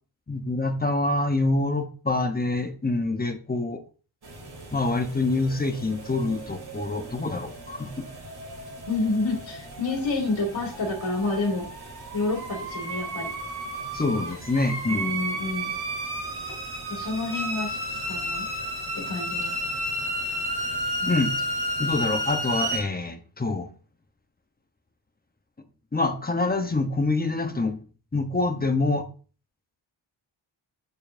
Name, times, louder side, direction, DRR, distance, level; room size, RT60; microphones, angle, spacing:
voice 1, 0.3-3.8 4.7-8.1 13.9-15.2 21.1-21.3 21.8-23.7 25.9-27.8 28.1-29.1, left 2 dB, 20° left, 6 dB, 0.9 m, -26 dB
sound 1, 4.2-22.8, right 1 dB, 55° right, 2.8 m, -33 dB
voice 2, 8.9-11.7 12.1-13.3 14.9-15.7 16.9-18.5 18.9-19.5 21.0-21.2, left 3 dB, 80° left, 0 dB, 2.2 m, -29 dB
7.2 x 6.8 x 2.6 m, 0.37 s
wide cardioid pair, 115°, 46 cm